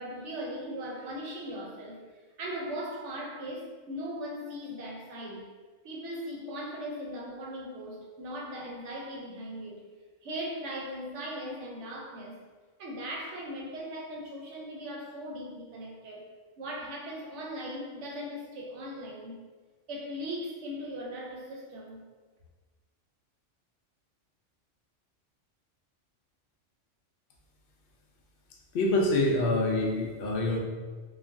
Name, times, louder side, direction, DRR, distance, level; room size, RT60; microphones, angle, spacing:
voice 1, 0.0-2.0 2.4-5.5 5.8-9.8 10.2-12.4 12.8-16.2 16.6-19.4 19.9-22.0, equal, 70° right, -2 dB, 0.9 m, -39 dB
voice 2, 28.7-30.6, left 2 dB, 60° left, 0 dB, 0.6 m, -26 dB
3.1 x 2.2 x 2.5 m, 1.4 s
omnidirectional pair, 1.3 m